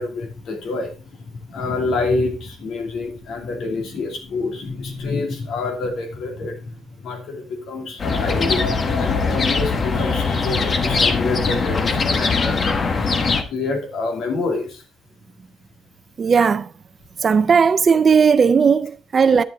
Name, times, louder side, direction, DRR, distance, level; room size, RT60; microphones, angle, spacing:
voice 1, 0.0-6.7 7.0-8.7 9.0-12.6 13.5-14.8, left 3 dB, 75° left, 2.6 m, -27 dB
sound 1, 8.0-13.4, left 4 dB, 45° left, 1.3 m, -21 dB
voice 2, 16.2-16.7 17.2-19.4, right 6 dB, 45° right, 0.4 m, -16 dB
9.8 x 7.6 x 3.9 m
cardioid pair, 90°, 0 cm